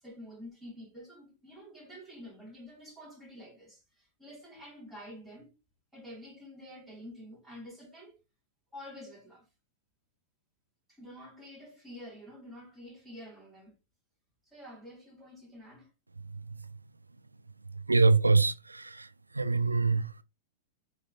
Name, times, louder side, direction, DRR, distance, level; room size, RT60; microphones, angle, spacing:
voice 1, 0.0-5.5 5.9-8.2 8.7-9.5 10.9-13.7 14.5-15.9, equal, 10° right, 2.2 m, -48 dB
voice 2, 17.9-19.1 19.3-20.2, right 3 dB, 90° right, 0.3 m, -25 dB
6.2 x 3.2 x 2.7 m
figure-of-eight pair, 100°, 0 cm